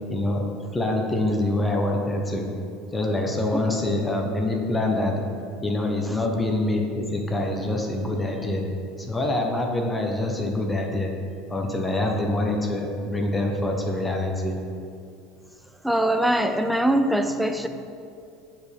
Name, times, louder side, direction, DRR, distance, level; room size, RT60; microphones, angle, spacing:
voice 1, 0.1-0.4 0.7-2.5 2.9-5.2 5.6-8.7 9.0-11.1 11.5-14.6, left 1 dB, 15° left, 2 dB, 0.9 m, -25 dB
voice 2, 15.8-17.7, right 1 dB, ahead, 7 dB, 0.5 m, -22 dB
7.6 x 4.9 x 3.5 m, 2.4 s
hypercardioid pair, 90°, 0 cm